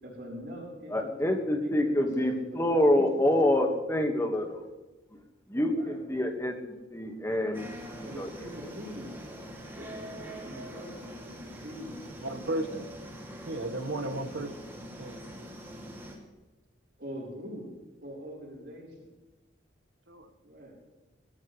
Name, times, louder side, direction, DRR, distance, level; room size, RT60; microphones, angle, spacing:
voice 1, 0.0-3.2 5.6-6.0 8.0-9.2 9.7-12.0 13.6-13.8 17.0-17.7 18.0-19.1 20.4-20.7, equal, 55° right, -9 dB, 4.5 m, -43 dB
voice 2, 0.9-4.7 5.5-7.7 8.0-8.3, left 1 dB, 15° left, 3 dB, 1.7 m, -27 dB
sound 1, 7.5-16.2, equal, 10° right, 2.6 m, -43 dB
voice 3, 12.2-12.9 13.5-14.5 15.0-15.2 20.1-20.3, right 1 dB, 80° right, 7 dB, 1.5 m, -34 dB
21.5 x 13.5 x 3.3 m, 1.1 s
head